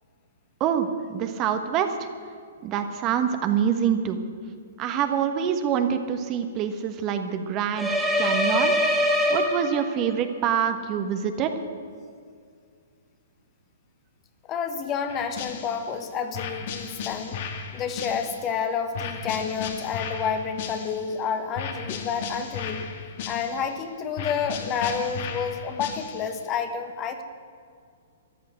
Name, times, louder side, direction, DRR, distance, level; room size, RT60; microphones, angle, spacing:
voice 1, 0.6-2.1 2.6-4.2 4.8-8.7 9.3-11.5, right 8 dB, 30° right, 7 dB, 1.3 m, -26 dB
sound 1, 7.8-10.1, equal, 5° right, 2.7 m, -23 dB
voice 2, 14.5-17.4 17.7-22.9 23.3-27.2, left 6 dB, 30° left, 7 dB, 1.4 m, -29 dB
sound 2, 15.1-15.9 16.3-18.6 18.9-21.2 21.5-23.8 24.2-26.4, left 6 dB, 50° left, 1.8 m, -35 dB
14.0 x 11.0 x 7.7 m, 2.2 s
hypercardioid pair, 120°, 0 cm